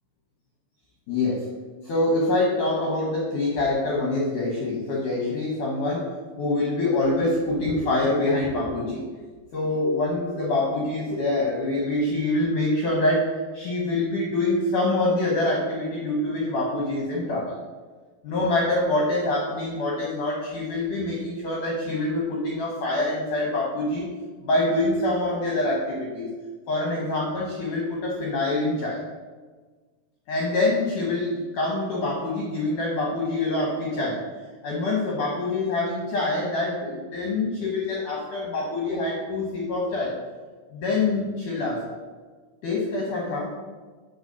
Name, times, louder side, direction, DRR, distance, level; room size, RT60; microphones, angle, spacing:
voice 1, 1.1-1.5 1.8-6.1 6.4-9.1 9.5-17.6 18.2-24.0 24.4-26.3 26.7-29.0 30.3-34.3 34.6-40.2 40.7-41.8 42.6-43.5, left 2 dB, 70° left, -2 dB, 1.9 m, -25 dB
8.0 x 4.0 x 6.8 m, 1.4 s
omnidirectional pair, 5.3 m